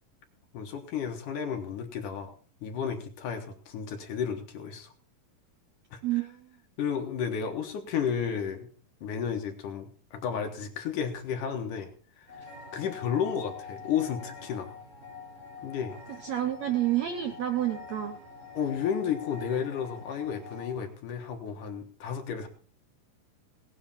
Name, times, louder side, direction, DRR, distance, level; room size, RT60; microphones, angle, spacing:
voice 1, 0.5-2.3 2.6-4.9 5.9-6.0 6.8-8.7 9.0-11.9 12.2-12.3 12.7-14.7 15.6-16.0 18.5-22.5, left 7 dB, 65° left, 4 dB, 2.7 m, -32 dB
voice 2, 6.0-6.5 16.2-18.2, right 12 dB, 75° right, 7 dB, 1.6 m, -29 dB
sound 1, 12.3-20.7, left 5 dB, 30° right, 6.2 m, -45 dB
17.5 x 9.8 x 4.3 m, 0.41 s
omnidirectional pair, 4.4 m